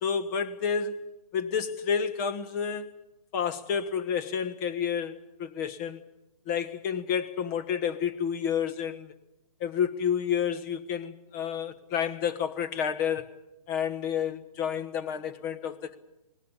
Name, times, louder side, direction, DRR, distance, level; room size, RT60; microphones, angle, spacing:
voice 1, 0.0-1.0 1.3-3.0 3.3-6.0 6.5-9.1 9.6-13.3 13.7-16.0, left 7 dB, 30° left, 1.3 m, -30 dB
25.0 x 19.0 x 8.3 m
hypercardioid pair, 155°, 19 cm